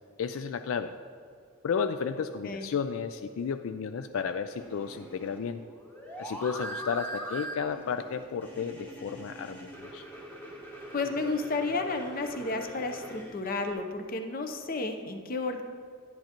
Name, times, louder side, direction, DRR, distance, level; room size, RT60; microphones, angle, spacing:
voice 1, 0.2-0.9 1.6-5.6 6.2-10.0, left 6 dB, 80° left, 9 dB, 0.3 m, -33 dB
sound 1, 4.5-13.7, right 1 dB, 10° left, 1.2 m, -42 dB
voice 2, 10.9-15.6, left 3 dB, 45° left, 6 dB, 0.7 m, -32 dB
10.5 x 10.5 x 2.9 m, 2.2 s
head